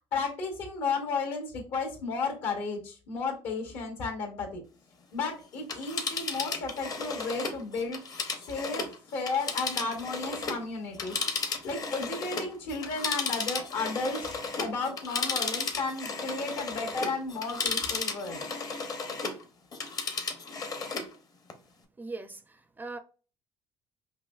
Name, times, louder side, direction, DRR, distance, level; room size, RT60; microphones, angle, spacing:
voice 1, 0.1-4.6 5.1-8.0 8.5-11.2 11.6-14.3 14.6-18.4, left 4 dB, 75° left, 1.9 m, -33 dB
Telephone, 5.6-10.6 10.9-19.4 19.7-21.1 21.5-21.6, left 4 dB, 35° left, 0.7 m, -34 dB
voice 2, 22.0-23.0, right 3 dB, 15° right, 0.4 m, -40 dB
5.4 x 2.2 x 2.4 m
cardioid pair, 130°, 11 cm